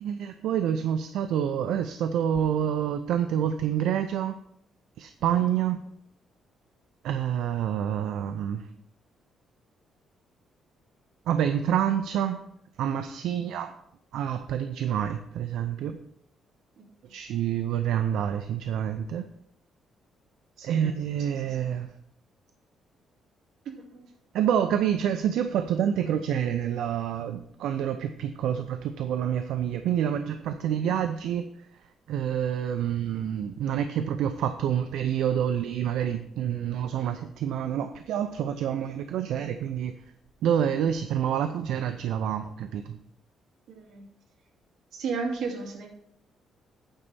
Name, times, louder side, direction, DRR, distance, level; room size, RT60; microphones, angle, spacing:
voice 1, 0.0-4.4 5.0-5.8 7.0-8.6 11.3-12.4 12.8-13.7 14.1-16.0 17.1-19.2 20.6-21.9 24.3-31.5 32.1-39.9 40.4-43.0, right 9 dB, 80° right, 8 dB, 0.5 m, -27 dB
voice 2, 20.6-21.0 21.4-21.7 23.9-24.0 43.7-44.0 44.9-45.9, right 4 dB, 65° right, 0 dB, 2.3 m, -34 dB
8.9 x 4.1 x 6.8 m, 0.69 s
cardioid pair, 160°, 0 cm